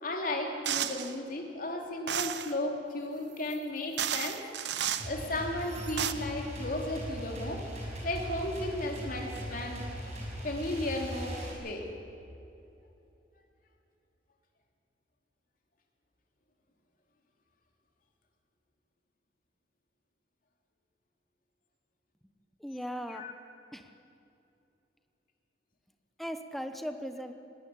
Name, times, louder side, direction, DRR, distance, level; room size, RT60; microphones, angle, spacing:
voice 1, 0.0-4.4 5.0-7.7 8.0-9.9 10.4-11.9 23.1-23.3, left 1 dB, 50° left, 2 dB, 2.9 m, -34 dB
sound 1, 0.7-1.1 2.1-2.5 3.5-3.6 4.0-5.1 5.7-6.1, right 9 dB, 70° right, 0.9 m, -32 dB
sound 2, 5.0-11.5, equal, 40° right, 6.3 m, -39 dB
voice 2, 22.6-23.2 23.7-23.9 26.2-27.3, equal, ahead, 7 dB, 1.1 m, -38 dB
19.5 x 18.5 x 8.5 m, 2.8 s
head